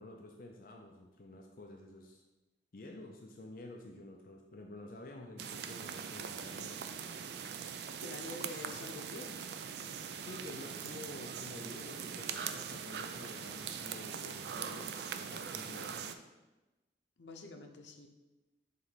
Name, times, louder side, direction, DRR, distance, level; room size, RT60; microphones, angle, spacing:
voice 1, 0.0-2.2 2.7-6.8 10.2-16.0, left 2 dB, 50° left, 1 dB, 0.5 m, -50 dB
sound 1, 5.4-16.1, right 7 dB, 65° right, 0.4 m, -42 dB
voice 2, 8.0-9.4 17.2-18.1, left 2 dB, 85° left, 4 dB, 0.7 m, -47 dB
7.4 x 3.1 x 4.1 m, 1.1 s
head